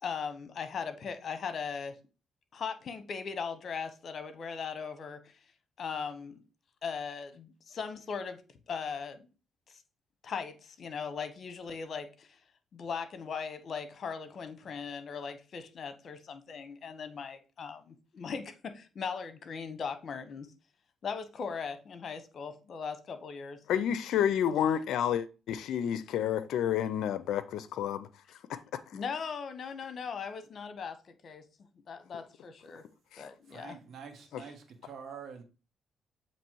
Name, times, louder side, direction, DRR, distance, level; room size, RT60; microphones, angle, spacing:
voice 1, 0.0-2.0 2.5-5.3 5.8-6.4 6.8-8.4 8.7-9.3 10.2-12.4 12.7-20.5 21.0-23.6 28.9-31.5 31.9-32.8 33.2-33.8 34.4-34.5, left 6 dB, 55° left, 1.0 m, -39 dB
voice 2, 23.7-28.1 28.5-28.8 33.1-33.3 34.3-34.4, left 9 dB, 80° left, 0.4 m, -30 dB
voice 3, 33.5-35.4, right 6 dB, 60° right, 1.2 m, -46 dB
7.3 x 3.0 x 4.5 m
cardioid pair, 90°, 0 cm